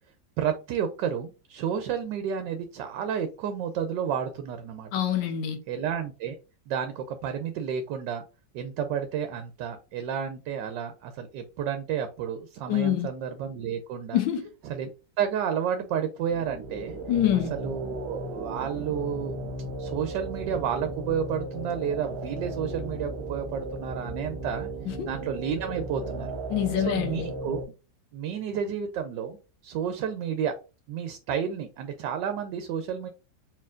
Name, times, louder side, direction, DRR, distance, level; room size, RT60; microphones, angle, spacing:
voice 1, 0.4-4.9 5.7-6.4 6.7-8.2 8.5-14.2 14.7-14.9 15.2-17.0 17.5-19.4 19.8-24.7 25.1-26.3 26.9-27.6 28.1-29.4 29.6-30.5 30.9-33.1, right 8 dB, 75° right, 1.2 m, -31 dB
voice 2, 4.9-5.6 12.7-13.1 14.1-14.4 17.1-17.5 24.9-25.1 26.5-27.3, left 10 dB, 90° left, 1.6 m, -25 dB
sound 1, 16.2-27.7, right 2 dB, 60° right, 1.2 m, -36 dB
4.4 x 3.8 x 2.4 m
omnidirectional pair, 2.0 m